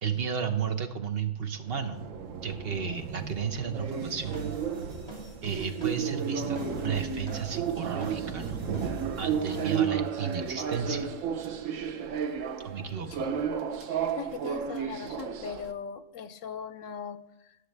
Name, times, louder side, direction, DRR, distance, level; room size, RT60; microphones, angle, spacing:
voice 1, 0.0-2.0 2.4-4.5 5.4-8.6 9.2-11.1 12.6-13.3, right 6 dB, 55° right, 7 dB, 1.0 m, -33 dB
sound 1, 1.6-15.7, right 7 dB, 85° right, 1.1 m, -33 dB
sound 2, 3.9-9.8, equal, 20° right, 2.6 m, -46 dB
voice 2, 13.9-17.6, left 7 dB, 80° left, 12 dB, 1.0 m, -40 dB
18.0 x 6.5 x 3.3 m, 0.97 s
omnidirectional pair, 1.3 m